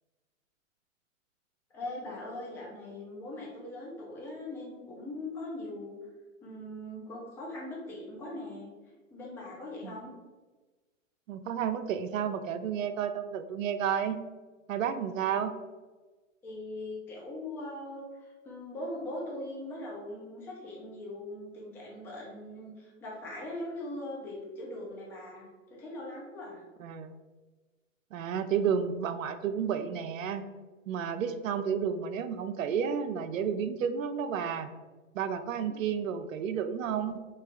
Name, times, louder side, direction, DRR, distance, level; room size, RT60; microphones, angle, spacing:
voice 1, 1.7-6.0 6.4-8.7 9.1-10.1 16.4-26.6 35.7-36.1, left 1 dB, 5° left, -3 dB, 0.3 m, -41 dB
voice 2, 11.3-14.2 14.7-15.6 26.8-27.1 28.1-30.5 30.9-34.7 35.1-37.2, right 7 dB, 80° right, 9 dB, 0.6 m, -31 dB
3.3 x 3.1 x 3.6 m, 1.3 s
hypercardioid pair, 135°, 39 cm